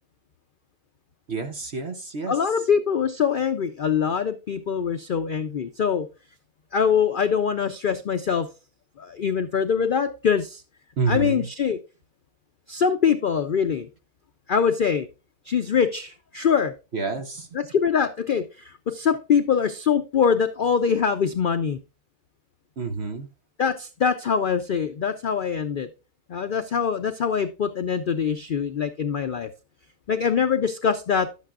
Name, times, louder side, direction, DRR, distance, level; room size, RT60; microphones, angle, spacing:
voice 1, 1.3-2.3 11.0-11.5 16.9-17.5 22.8-23.3, right 4 dB, 50° right, 7 dB, 1.1 m, -28 dB
voice 2, 2.3-6.1 6.7-8.5 9.0-10.6 11.1-11.8 12.7-13.9 14.5-15.1 15.5-16.7 17.5-21.8 23.6-25.9 26.3-29.5 30.1-31.3, left 7 dB, 90° left, 9 dB, 0.4 m, -23 dB
11.0 x 8.4 x 2.4 m, 0.31 s
omnidirectional pair, 1.6 m